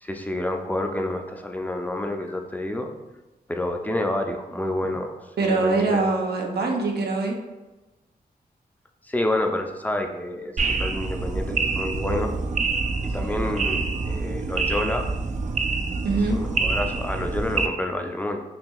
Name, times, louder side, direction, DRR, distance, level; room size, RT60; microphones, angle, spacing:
voice 1, 0.0-2.9 3.5-6.0 9.0-12.3 13.1-15.1 16.2-18.4, left 1 dB, 10° left, 4 dB, 0.4 m, -29 dB
voice 2, 5.4-7.3 13.2-13.5 16.0-16.4, right 3 dB, 85° right, 1 dB, 0.7 m, -24 dB
sound 1, 10.6-17.7, right 4 dB, 50° right, 0.4 m, -26 dB
5.7 x 2.7 x 2.3 m, 1.1 s
wide cardioid pair, 80°, 16 cm